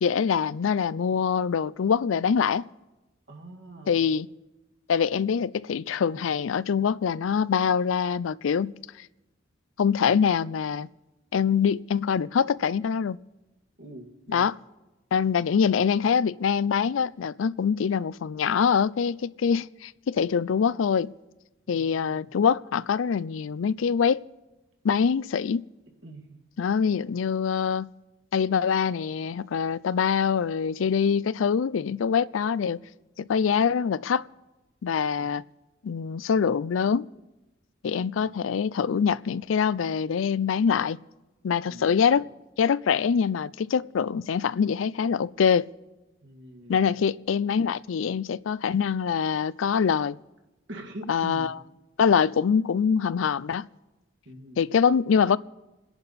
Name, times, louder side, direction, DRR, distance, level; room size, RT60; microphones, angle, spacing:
voice 1, 0.0-2.6 3.9-4.3 4.9-8.7 9.8-10.9 11.3-13.2 14.3-14.6 15.1-21.1 21.7-24.2 24.8-25.6 26.6-27.9 28.3-32.8 33.2-34.3 34.8-35.4 35.8-37.1 37.8-41.0 41.4-42.3 42.6-45.7 46.7-50.2 51.1-51.5 52.0-53.7 54.6-55.4, left 6 dB, 85° left, 0.4 m, -24 dB
voice 2, 3.3-4.1 5.9-6.3 13.8-14.5 21.7-22.4 26.0-26.4 35.2-35.4 38.2-38.6 41.6-42.3 46.2-46.9 50.7-51.6 54.3-54.6, right 1 dB, 65° right, 2.1 m, -44 dB
28.5 x 10.5 x 4.2 m
head